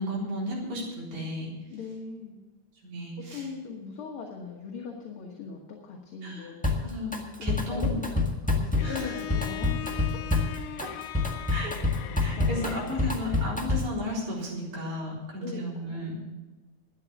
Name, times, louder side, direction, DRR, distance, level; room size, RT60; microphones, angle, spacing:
voice 1, 0.0-1.5 2.8-3.5 6.2-6.5 6.8-8.0 8.8-9.1 10.8-10.9 11.5-11.7 12.1-16.2, left 1 dB, 80° right, -4 dB, 5.3 m, -34 dB
voice 2, 1.7-2.4 3.3-6.7 7.4-8.2 8.4-9.8 10.1-10.2 11.9-12.9 15.4-15.6 15.9-16.0, left 5 dB, 55° left, 0 dB, 2.0 m, -40 dB
Drum kit, 6.6-7.2 7.5-14.0, left 3 dB, 5° left, 0.7 m, -27 dB
Bowed string instrument, 8.8-13.6, left 12 dB, 85° left, 1.2 m, -39 dB
12.5 x 9.8 x 7.1 m, 1.2 s
omnidirectional pair, 3.4 m